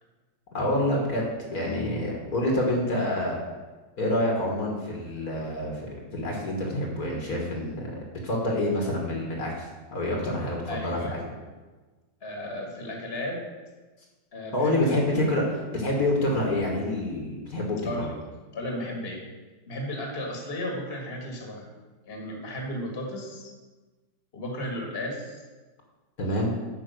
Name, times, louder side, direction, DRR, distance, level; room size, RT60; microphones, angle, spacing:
voice 1, 0.5-1.2 1.5-3.4 4.0-7.8 8.2-11.2 14.5-18.1 26.2-26.5, left 1 dB, 55° left, 0 dB, 2.0 m, -27 dB
voice 2, 10.7-11.3 12.2-13.4 14.3-15.2 17.8-18.1 18.5-19.2 19.7-21.7 22.0-23.5 24.3-25.4, left 1 dB, 35° left, 0 dB, 1.9 m, -34 dB
9.1 x 5.5 x 6.6 m, 1.3 s
omnidirectional pair, 1.9 m